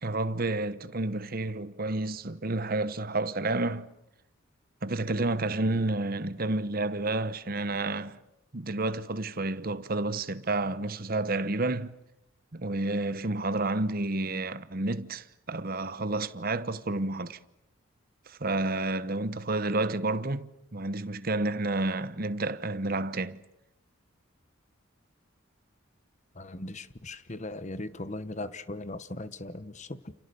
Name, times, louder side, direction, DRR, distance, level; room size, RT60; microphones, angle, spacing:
voice 1, 0.0-3.9 4.8-8.2 8.5-11.9 12.5-17.4 18.3-23.4, right 2 dB, 45° right, 1.0 m, -30 dB
voice 2, 26.3-30.1, left 2 dB, 35° left, 1.1 m, -39 dB
29.5 x 28.0 x 6.9 m
head